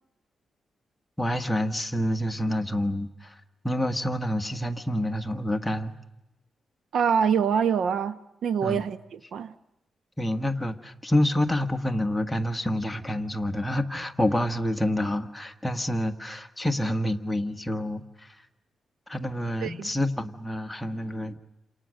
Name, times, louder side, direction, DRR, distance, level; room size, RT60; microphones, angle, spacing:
voice 1, 1.2-6.0 8.6-8.8 10.2-18.4 19.1-21.4, left 1 dB, 5° left, 1.5 m, -28 dB
voice 2, 6.9-9.5 19.6-19.9, right 7 dB, 75° right, 1.1 m, -25 dB
29.5 x 27.5 x 6.4 m
wide cardioid pair, 135°, 0 cm